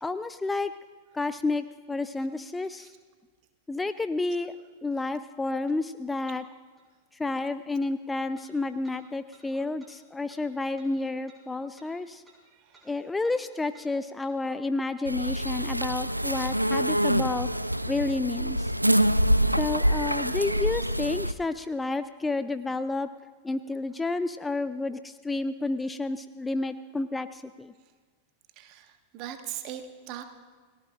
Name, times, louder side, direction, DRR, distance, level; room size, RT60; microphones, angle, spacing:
voice 1, 0.0-0.7 1.1-2.9 3.7-4.6 4.8-6.4 7.1-12.2 12.8-17.5 17.9-18.7 19.6-23.1 23.4-27.7, left 3 dB, 10° left, 12 dB, 0.4 m, -30 dB
sound 1, 6.8-6.9 8.3-8.5 8.8-9.0 9.3-9.4 9.8-9.9 10.3-10.4 10.8-10.9 11.3-11.4 11.8-11.9 12.2-12.4 12.7-12.9 13.2-13.4 13.7-13.9 14.2-14.4, right 3 dB, 10° right, 4.4 m, -58 dB
voice 2, 12.5-12.9 28.5-30.2, right 11 dB, 40° right, 6 dB, 1.5 m, -41 dB
sound 2, 15.1-21.3, equal, 90° right, 0.4 m, -25 dB
29.5 x 18.0 x 2.5 m, 1.5 s
figure-of-eight pair, 90°, 0 cm